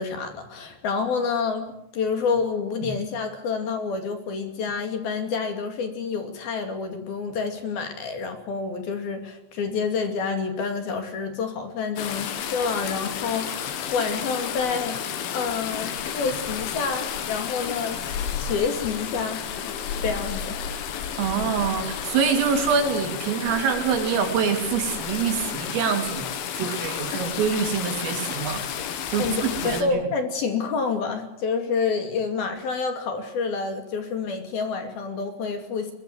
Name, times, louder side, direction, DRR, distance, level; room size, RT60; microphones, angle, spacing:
voice 1, 0.0-1.7 1.9-19.5 20.0-20.6 29.2-35.9, left 5 dB, 55° left, 6 dB, 4.0 m, -28 dB
sound 1, 12.0-29.8, left 8 dB, 70° left, 4.3 m, -32 dB
voice 2, 21.2-26.2 26.6-28.6 29.1-30.0, right 6 dB, 80° right, 5 dB, 5.8 m, -25 dB
22.5 x 22.0 x 8.0 m, 0.81 s
omnidirectional pair, 5.9 m